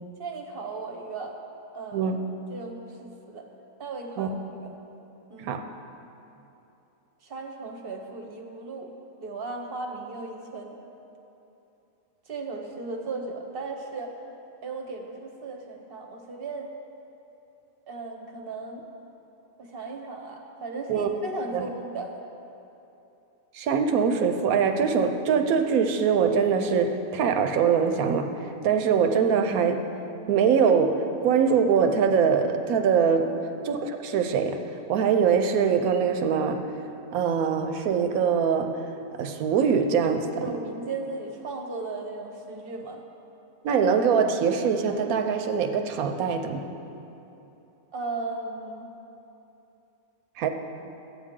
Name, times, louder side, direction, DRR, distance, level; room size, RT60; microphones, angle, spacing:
voice 1, 0.2-1.4 1.7-2.1 2.5-3.5 3.8-4.7 5.3-5.6 7.2-8.9 9.2-10.8 12.3-14.2 14.6-16.7 17.9-18.8 19.6-22.2 33.2-33.4 40.4-43.0 47.9-48.9, right 3 dB, 50° right, 2 dB, 0.9 m, -36 dB
voice 2, 23.5-29.8 30.3-33.3 33.6-34.6 34.9-36.6 37.1-38.7 39.2-40.4 43.6-46.6 50.4-50.5, right 6 dB, 85° right, 6 dB, 1.1 m, -23 dB
12.5 x 8.6 x 3.7 m, 2.9 s
omnidirectional pair, 1.5 m